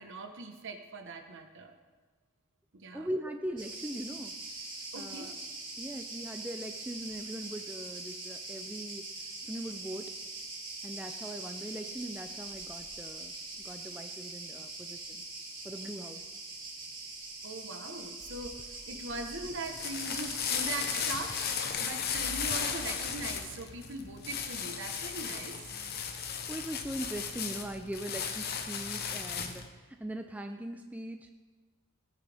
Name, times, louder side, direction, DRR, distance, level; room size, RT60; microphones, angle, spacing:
voice 1, 0.0-1.7 2.7-3.1 4.9-5.3 17.4-21.4 21.8-25.7, right 3 dB, 55° right, 5 dB, 1.2 m, -41 dB
voice 2, 2.9-4.4 4.9-5.3 5.8-9.1 9.4-10.1 10.8-13.3 13.6-15.2 15.6-16.3 26.5-31.4, right 1 dB, 5° right, 5 dB, 0.4 m, -40 dB
Cricket, 3.6-21.7, right 2 dB, 20° right, 2.9 m, -43 dB
sound 1, 19.5-29.7, left 6 dB, 45° left, 0.9 m, -35 dB
17.0 x 9.2 x 3.5 m, 1.3 s
head